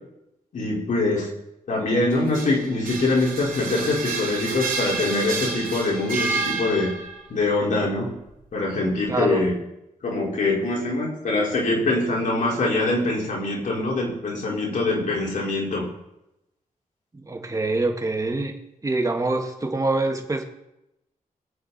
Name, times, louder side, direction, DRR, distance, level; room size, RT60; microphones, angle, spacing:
voice 1, 0.5-1.3 1.7-6.9 7.3-8.1 8.5-9.5 10.0-15.8, left 2 dB, 65° left, -3 dB, 4.8 m, -24 dB
sound 1, 2.1-7.3, right 4 dB, 80° right, 2.8 m, -30 dB
voice 2, 9.1-9.4 17.1-18.6 18.8-20.4, right 2 dB, 25° right, 3 dB, 2.0 m, -25 dB
22.0 x 8.8 x 4.3 m, 0.87 s
cardioid pair, 95°, 14 cm